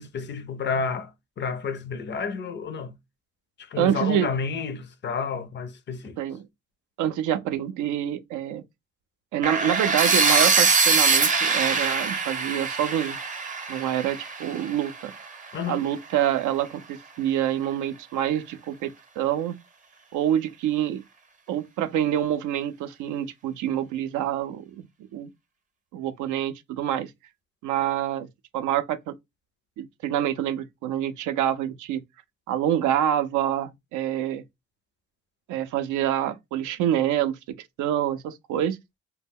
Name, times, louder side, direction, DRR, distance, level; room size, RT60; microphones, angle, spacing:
voice 1, 0.0-3.0 3.6-6.2 15.5-15.8, left 5 dB, 40° left, 0.4 m, -30 dB
voice 2, 3.8-4.3 6.2-6.5 7.0-8.6 9.3-13.2 13.7-15.1 15.7-19.5 20.1-21.0 21.5-24.9 25.1-25.3 25.9-27.1 27.6-28.3 28.5-29.1 29.8-32.0 32.5-34.4 35.5-38.8, right 11 dB, 85° right, 0.5 m, -26 dB
sound 1, 9.4-15.3, right 4 dB, 25° right, 0.6 m, -23 dB
2.2 x 2.1 x 3.4 m
cardioid pair, 90°, 30 cm